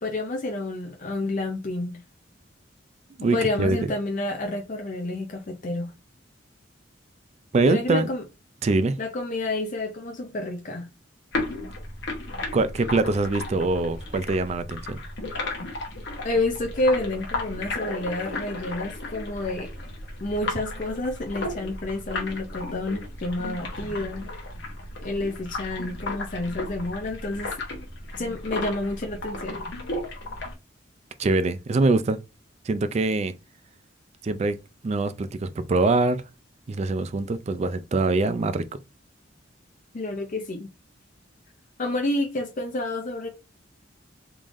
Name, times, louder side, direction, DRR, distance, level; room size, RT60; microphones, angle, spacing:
voice 1, 0.0-2.0 3.3-5.9 7.6-8.2 9.0-10.9 16.2-19.7 20.2-24.3 25.0-27.5 28.2-29.5 39.9-40.7 41.8-43.3, left 2 dB, 45° left, 0.6 m, -29 dB
voice 2, 3.2-3.8 7.5-8.1 8.6-9.0 12.5-15.0 31.2-32.2 32.6-33.3 34.2-34.6 34.8-36.2 36.7-38.6, right 3 dB, 35° right, 0.4 m, -23 dB
sound 1, 11.3-30.5, left 2 dB, 65° left, 1.0 m, -34 dB
3.7 x 3.2 x 2.5 m
head